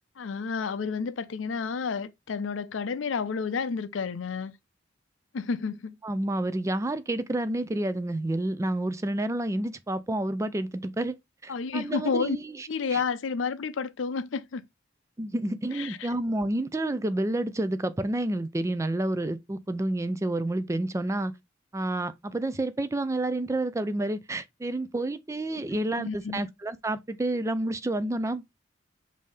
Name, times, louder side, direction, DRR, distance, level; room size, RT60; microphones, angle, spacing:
voice 1, 0.2-4.5 5.3-6.0 11.5-12.4 12.7-14.6 15.7-16.1 26.0-26.4, left 5 dB, 85° left, 0.5 m, -30 dB
voice 2, 6.0-11.2 11.4-13.0 15.2-21.3 21.7-28.4, right 1 dB, 15° right, 0.4 m, -29 dB
5.3 x 2.7 x 3.3 m
head